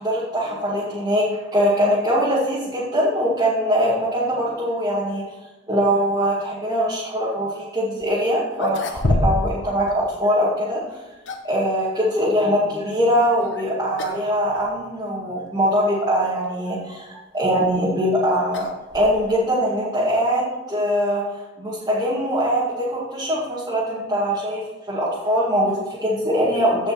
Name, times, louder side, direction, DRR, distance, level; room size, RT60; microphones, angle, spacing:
voice 1, 0.0-5.2 5.7-10.8 11.4-18.7 18.9-24.6 24.9-26.9, equal, 20° right, -9 dB, 2.1 m, -22 dB
sound 1, 8.0-8.1 8.5-9.6 9.9-10.0 10.9-11.6 13.4-13.6 14.0-14.3 14.6-14.7 15.5-15.6 17.3-19.5, left 2 dB, 85° left, 1.1 m, -27 dB
15.5 x 5.4 x 4.3 m, 1.1 s
head